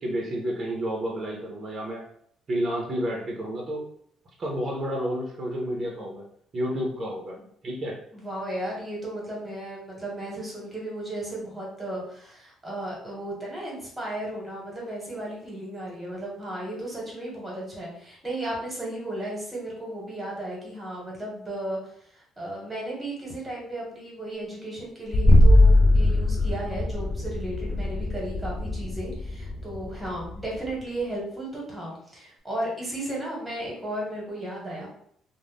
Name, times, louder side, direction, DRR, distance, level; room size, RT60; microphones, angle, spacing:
voice 1, 0.0-2.0 2.5-3.9 4.4-6.2 6.5-7.4 7.6-8.0, equal, 30° right, -1 dB, 0.6 m, -30 dB
voice 2, 8.1-21.8 22.4-34.9, right 1 dB, 10° right, -4 dB, 1.2 m, -34 dB
sound 1, 25.1-30.7, left 1 dB, 35° left, 0.3 m, -20 dB
2.5 x 2.1 x 3.4 m, 0.66 s
cardioid pair, 125°, 0 cm